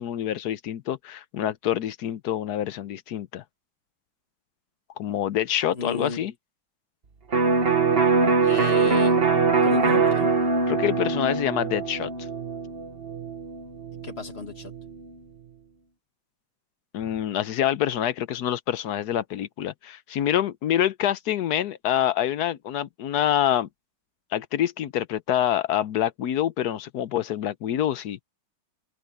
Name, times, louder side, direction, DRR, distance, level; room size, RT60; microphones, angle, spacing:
voice 1, 0.0-3.4 5.0-6.3 10.7-12.1 16.9-23.7 24.3-28.2, left 11 dB, 65° left, 1.1 m, -26 dB
voice 2, 5.7-6.2 8.4-9.2 9.6-10.3 14.0-14.7, left 4 dB, 30° left, 1.9 m, -34 dB
Electric guitar, 7.3-15.0, right 4 dB, 35° right, 1.3 m, -23 dB
omnidirectional pair, 2.2 m